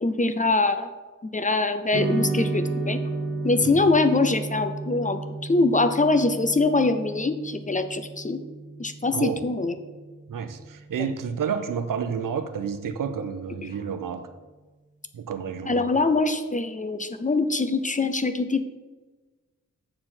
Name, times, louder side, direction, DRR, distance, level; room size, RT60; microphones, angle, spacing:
voice 1, 0.0-0.9 1.3-3.0 3.4-8.4 8.8-9.8 15.7-18.6, left 3 dB, 25° left, 9 dB, 0.5 m, -23 dB
sound 1, 1.9-10.4, right 3 dB, 40° right, 1.0 m, -32 dB
voice 2, 9.1-9.5 10.3-14.3 15.1-15.9, right 7 dB, 80° right, 9 dB, 0.7 m, -30 dB
7.5 x 6.7 x 4.3 m, 1.3 s
wide cardioid pair, 160°, 32 cm